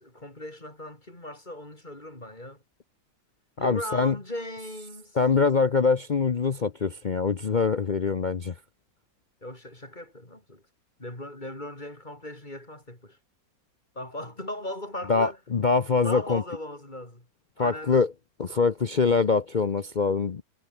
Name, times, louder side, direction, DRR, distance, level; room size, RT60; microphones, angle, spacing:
voice 1, 0.0-2.6 3.6-5.2 9.4-10.6 11.0-13.2 14.0-15.4 16.0-17.3 17.6-18.1, left 1 dB, 25° left, 5.2 m, -38 dB
voice 2, 3.6-4.2 5.2-8.5 15.1-16.4 17.6-18.1 18.4-20.4, left 4 dB, 65° left, 0.4 m, -24 dB
omnidirectional pair, 2.0 m